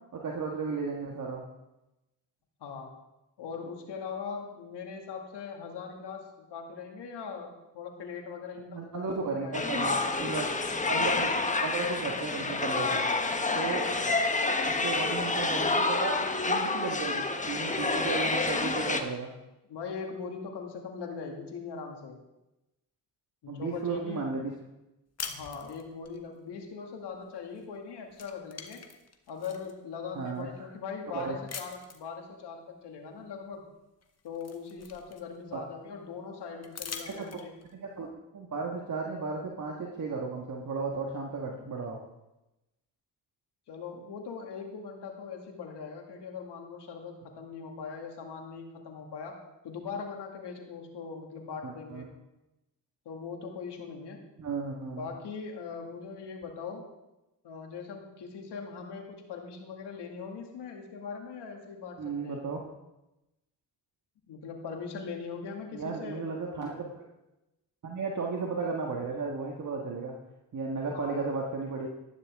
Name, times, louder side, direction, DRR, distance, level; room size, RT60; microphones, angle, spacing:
voice 1, 0.1-1.4 8.7-10.5 10.9-11.3 11.6-13.0 13.5-13.9 14.6-19.3 23.5-24.5 30.1-30.5 31.1-31.4 35.5-35.6 37.1-37.4 37.7-42.0 51.6-52.0 54.4-55.1 62.0-62.7 65.7-66.9 67.8-70.2 70.5-71.9, right 4 dB, 45° right, -1 dB, 1.7 m, -34 dB
voice 2, 2.6-3.0 3.4-9.9 19.7-22.2 23.4-24.3 25.3-28.8 29.3-33.6 34.2-37.5 43.7-49.4 49.6-52.1 53.1-54.2 55.0-56.8 57.4-62.4 64.3-66.3 70.9-71.3, left 5 dB, 75° left, 2 dB, 2.3 m, -40 dB
sound 1, 9.5-19.0, left 3 dB, 20° left, 1.1 m, -28 dB
sound 2, 25.2-26.2 27.6-27.8 28.1-29.7 30.3-30.4 31.5-32.1 33.5-33.6 34.0-35.5 36.6-37.7, left 5 dB, 35° left, 1.4 m, -43 dB
13.0 x 11.0 x 3.7 m, 0.96 s
cardioid pair, 70°, 42 cm